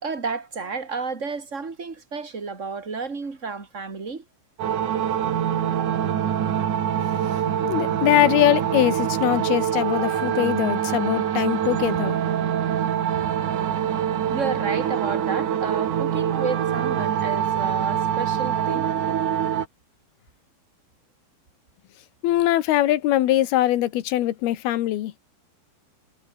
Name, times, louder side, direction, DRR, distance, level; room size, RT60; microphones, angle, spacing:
voice 1, 0.0-4.2 14.3-19.1, right 4 dB, 20° right, 2.8 m, -31 dB
sound 1, 4.6-19.7, right 9 dB, 55° right, 3.2 m, -24 dB
voice 2, 7.6-12.2 22.2-25.1, left 14 dB, 80° left, 3.2 m, -22 dB
omnidirectional pair, 4.5 m